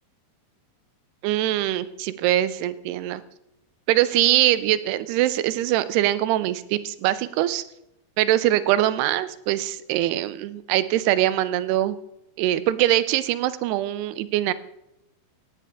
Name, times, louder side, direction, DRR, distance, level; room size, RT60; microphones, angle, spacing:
voice 1, 1.2-3.2 3.9-7.6 8.2-12.0 12.4-14.5, right 14 dB, 90° right, 14 dB, 2.7 m, -22 dB
16.0 x 9.6 x 3.6 m, 0.82 s
omnidirectional pair, 4.6 m